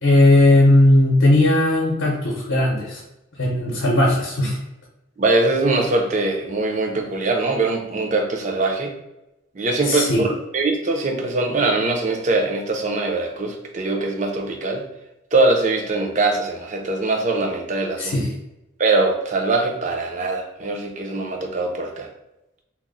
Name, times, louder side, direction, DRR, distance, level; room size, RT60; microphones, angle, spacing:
voice 1, 0.0-3.0 3.4-4.6 9.8-10.2 18.0-18.3, left 1 dB, 75° left, -2 dB, 0.6 m, -17 dB
voice 2, 5.2-8.9 9.5-14.8 15.3-18.2 18.8-22.1, right 2 dB, 40° right, 2 dB, 0.4 m, -22 dB
2.9 x 2.0 x 3.8 m, 0.93 s
head